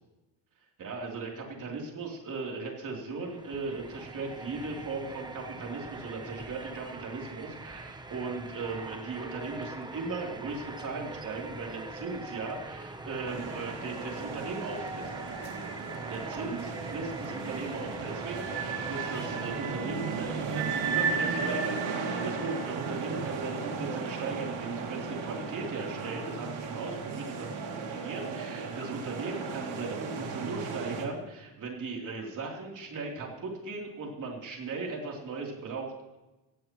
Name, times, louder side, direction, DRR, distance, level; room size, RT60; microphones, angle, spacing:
voice 1, 0.8-15.1 16.1-36.2, right 3 dB, 40° right, 0 dB, 3.3 m, -38 dB
sound 1, 3.0-21.5, right 2 dB, 10° right, 0.7 m, -43 dB
sound 2, 13.3-31.1, right 5 dB, 80° right, 2.7 m, -35 dB
16.5 x 15.5 x 3.1 m, 1.1 s
cardioid pair, 170°, 46 cm